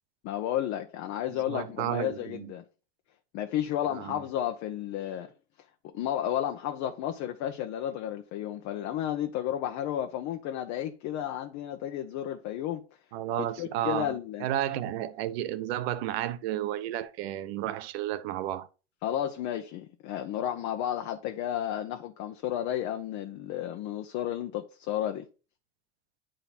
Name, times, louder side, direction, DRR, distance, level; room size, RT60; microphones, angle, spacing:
voice 1, 0.2-2.6 3.3-5.3 5.9-12.8 13.4-14.5 19.0-25.3, left 11 dB, 55° left, 0.9 m, -32 dB
voice 2, 1.5-2.5 3.9-4.2 13.1-18.7, right 12 dB, 80° right, 0.9 m, -32 dB
9.3 x 3.9 x 4.3 m
supercardioid pair, 130°, 31 cm